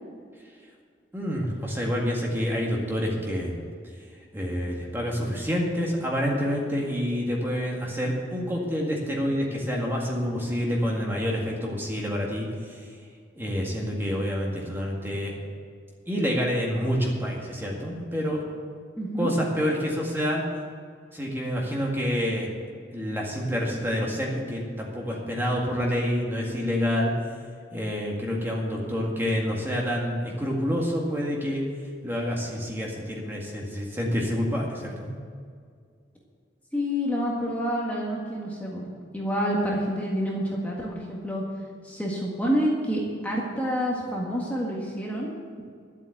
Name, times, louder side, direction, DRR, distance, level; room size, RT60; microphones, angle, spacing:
voice 1, 1.1-3.6 4.3-12.9 13.4-15.3 16.1-18.4 19.2-20.5 21.1-22.5 22.9-27.1 27.7-31.6 32.0-35.1, equal, 10° right, -2 dB, 1.9 m, -28 dB
voice 2, 19.0-19.3 36.7-38.8 39.1-41.4 41.8-45.3, equal, 10° left, -4 dB, 1.7 m, -28 dB
12.0 x 8.3 x 7.9 m, 2.1 s
head